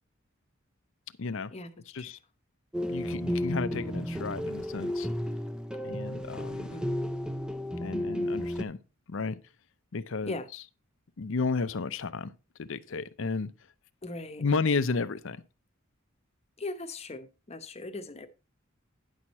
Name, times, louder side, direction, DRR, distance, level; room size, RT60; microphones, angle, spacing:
voice 1, 1.2-1.5 1.9-2.2 2.9-5.1 5.8-6.7 7.8-8.8 9.1-9.4 9.9-10.3 11.2-12.3 12.6-13.5 14.4-15.4, left 4 dB, 70° left, 0.6 m, -32 dB
sound 1, 2.7-8.6, equal, 5° right, 0.5 m, -33 dB
voice 2, 14.0-14.4 16.6-18.3, left 2 dB, 30° left, 0.9 m, -39 dB
10.0 x 6.2 x 4.2 m
head